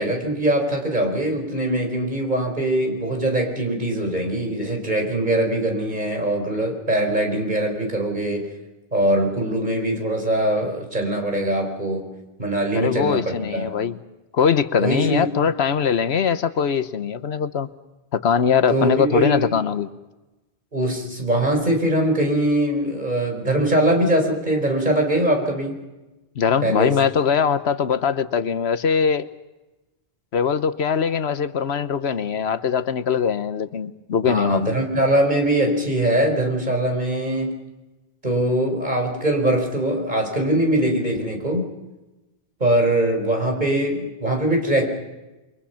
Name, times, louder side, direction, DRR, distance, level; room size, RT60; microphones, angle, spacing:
voice 1, 0.0-8.5 8.9-12.0 12.4-13.7 14.8-15.3 18.7-19.5 20.7-25.8 26.6-26.9 34.2-37.6 38.2-41.6 42.6-44.9, right 1 dB, 45° right, 3 dB, 4.9 m, -22 dB
voice 2, 12.7-14.0 14.3-17.7 18.1-19.9 26.4-29.3 30.3-34.7, left 7 dB, 90° left, 12 dB, 1.2 m, -21 dB
28.5 x 23.5 x 5.8 m, 1.1 s
omnidirectional pair, 1.1 m